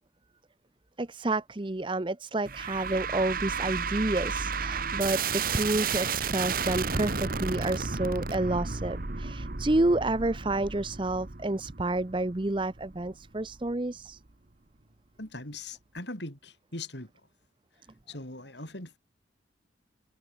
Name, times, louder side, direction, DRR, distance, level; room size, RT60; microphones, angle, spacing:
voice 1, 1.0-5.2 5.5-14.2, right 2 dB, 25° right, 0.7 m, -29 dB
sound 1, 2.5-13.7, right 5 dB, 45° right, 1.3 m, -33 dB
voice 2, 15.2-17.1 18.1-19.0, left 2 dB, 60° left, 7.3 m, -40 dB
head